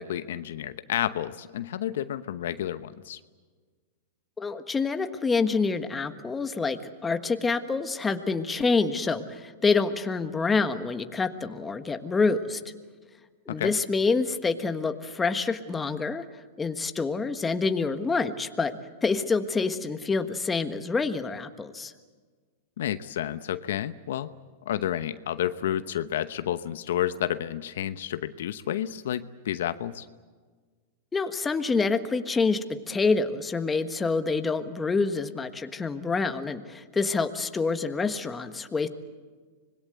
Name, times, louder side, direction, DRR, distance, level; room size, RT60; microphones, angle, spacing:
voice 1, 0.0-3.2 13.5-13.7 22.8-24.3 24.7-30.1, left 11 dB, 75° left, 12 dB, 0.9 m, -30 dB
voice 2, 4.4-12.6 13.5-16.2 16.6-18.7 19.0-21.9 31.1-38.9, left 4 dB, 15° left, 8 dB, 1.4 m, -27 dB
25.5 x 21.0 x 8.1 m, 1.5 s
hypercardioid pair, 130°, 0 cm